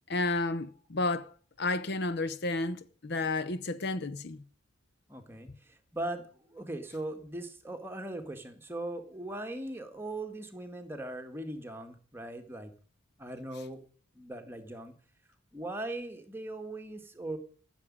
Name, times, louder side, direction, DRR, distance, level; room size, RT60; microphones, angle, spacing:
voice 1, 0.1-1.3 1.6-4.4, left 2 dB, 50° left, 0.7 m, -31 dB
voice 2, 5.1-12.7 13.2-13.8 14.2-14.9 15.5-17.4, right 1 dB, 10° right, 1.8 m, -39 dB
15.0 x 7.3 x 9.8 m
head